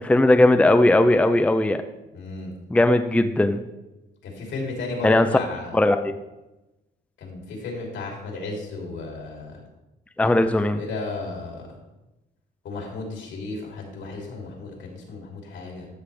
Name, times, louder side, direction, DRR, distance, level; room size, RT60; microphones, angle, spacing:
voice 1, 0.0-1.8 2.7-3.6 5.0-5.3 5.7-6.1 10.2-10.8, left 1 dB, 5° left, 8 dB, 0.5 m, -18 dB
voice 2, 2.1-2.5 4.2-5.8 7.2-9.6 10.7-11.7 12.6-15.9, left 3 dB, 75° left, -1 dB, 3.1 m, -34 dB
13.0 x 6.7 x 3.4 m, 1.0 s
cardioid pair, 90°, 20 cm